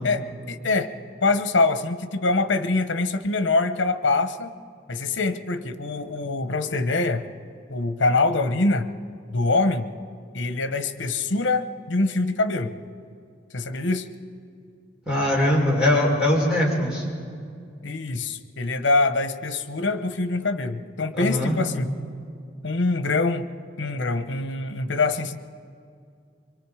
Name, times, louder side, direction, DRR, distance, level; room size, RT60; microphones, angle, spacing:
voice 1, 0.0-0.9 1.2-4.5 4.9-7.2 7.7-8.9 9.3-9.9 10.3-12.7 13.5-14.1 17.8-21.9 22.6-23.5 23.8-25.4, left 3 dB, 80° left, 10 dB, 1.0 m, -24 dB
voice 2, 15.1-17.0 21.1-21.6, left 1 dB, 5° right, -5 dB, 5.4 m, -21 dB
25.0 x 23.5 x 5.0 m, 2.3 s
head